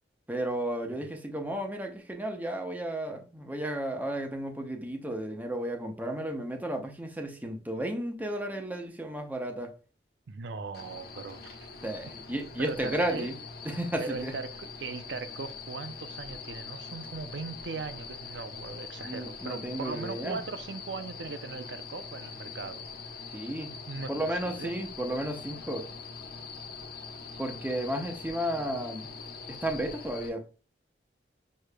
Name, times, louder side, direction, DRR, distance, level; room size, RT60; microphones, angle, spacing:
voice 1, 0.3-9.7 11.8-13.3 13.7-14.3 19.0-20.4 23.3-23.8 24.1-25.9 27.4-29.1 29.5-30.4, right 1 dB, 10° right, 0.7 m, -33 dB
voice 2, 10.3-11.6 12.6-13.3 14.0-22.8 23.9-24.1 24.4-24.9, right 4 dB, 80° right, 0.5 m, -39 dB
sound 1, 10.7-30.3, left 5 dB, 60° left, 0.9 m, -43 dB
6.5 x 3.1 x 2.2 m
head